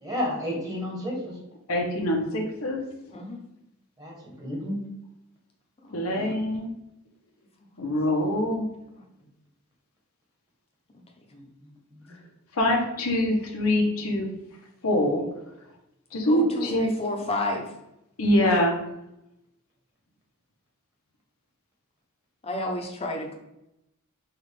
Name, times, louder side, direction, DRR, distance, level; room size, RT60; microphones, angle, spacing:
voice 1, 0.0-1.3 4.0-4.8 6.1-6.3, left 1 dB, 15° right, -3 dB, 1.2 m, -31 dB
voice 2, 1.7-2.8 5.9-6.7 7.8-8.6 12.5-14.3 14.8-15.2 16.1-16.4 16.7-16.9 18.2-18.8, left 1 dB, 85° left, 1 dB, 0.9 m, -24 dB
voice 3, 16.3-17.7 22.4-23.4, left 2 dB, 30° left, 2 dB, 0.7 m, -31 dB
5.9 x 2.4 x 3.3 m, 0.85 s
head